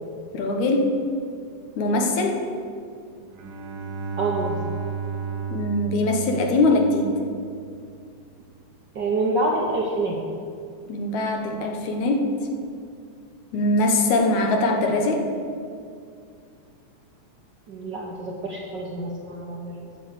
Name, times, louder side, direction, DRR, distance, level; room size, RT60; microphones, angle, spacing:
voice 1, 0.3-0.9 1.8-2.4 5.5-7.1 10.9-12.2 13.5-15.2, left 2 dB, 75° left, 2 dB, 2.5 m, -22 dB
Bowed string instrument, 3.2-7.0, right 6 dB, 60° right, 1.5 m, -32 dB
voice 2, 4.2-4.6 8.9-10.2 17.7-19.9, right 2 dB, 75° right, -2 dB, 1.0 m, -27 dB
9.9 x 6.5 x 8.2 m, 2.3 s
omnidirectional pair, 3.4 m